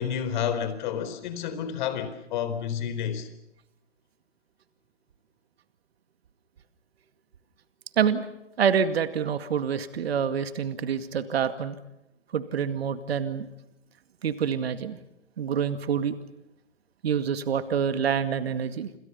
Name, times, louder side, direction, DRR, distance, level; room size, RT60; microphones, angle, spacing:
voice 1, 0.0-3.3, left 8 dB, 40° left, 4.1 m, -30 dB
voice 2, 8.6-11.8 12.3-13.5 14.2-15.0 15.4-16.2 17.0-18.9, right 7 dB, 55° right, 2.2 m, -26 dB
28.0 x 28.0 x 5.7 m
figure-of-eight pair, 130°, 36 cm